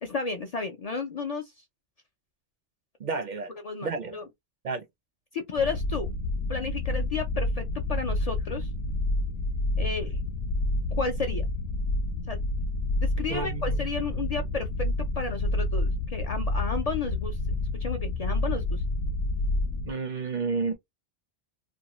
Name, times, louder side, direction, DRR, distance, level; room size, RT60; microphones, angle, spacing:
voice 1, 0.0-1.6 3.6-4.2 5.3-6.1 6.5-7.6 7.9-8.7 9.8-10.2 11.0-11.4 12.3-12.4 13.2-14.7 15.0-17.4 17.8-18.8, left 4 dB, 55° left, 0.4 m, -32 dB
voice 2, 3.0-3.5 3.8-4.2 4.6-4.9 13.3-14.5 14.8-14.9 19.8-20.8, right 4 dB, 55° right, 0.5 m, -32 dB
sound 1, 5.6-19.9, left 2 dB, 75° left, 0.8 m, -29 dB
2.6 x 2.2 x 2.9 m
omnidirectional pair, 1.1 m